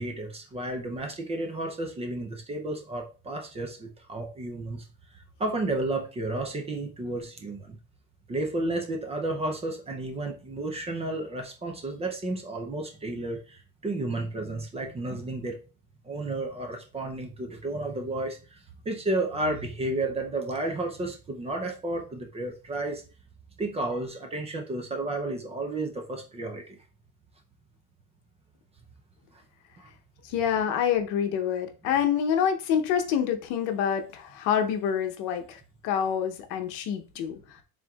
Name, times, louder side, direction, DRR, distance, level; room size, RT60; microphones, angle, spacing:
voice 1, 0.0-4.9 5.4-7.8 8.3-15.6 16.0-18.6 18.9-23.0 23.6-26.8 29.8-29.9, right 2 dB, 15° right, 3 dB, 0.4 m, -32 dB
voice 2, 30.2-37.4, left 8 dB, 75° left, 6 dB, 0.8 m, -27 dB
4.4 x 3.7 x 2.3 m, 0.34 s
cardioid pair, 160°, 37 cm